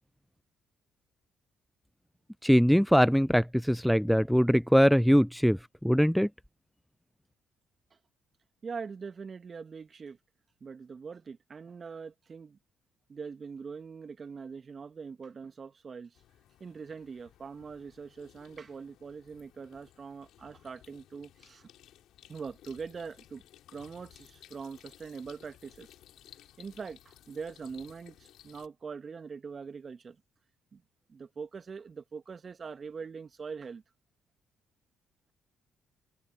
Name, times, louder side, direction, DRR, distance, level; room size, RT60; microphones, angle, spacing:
voice 1, 2.4-6.3, equal, ahead, 0.4 m, -22 dB
voice 2, 8.6-10.2 10.6-12.6 13.1-16.2 16.6-21.7 22.3-23.4 23.7-25.9 26.6-30.2 30.7-30.8 31.1-33.8, right 5 dB, 45° right, 2.2 m, -43 dB
sound 1, 16.1-28.7, left 12 dB, 70° left, 4.4 m, -58 dB
hypercardioid pair, 50°, 0 cm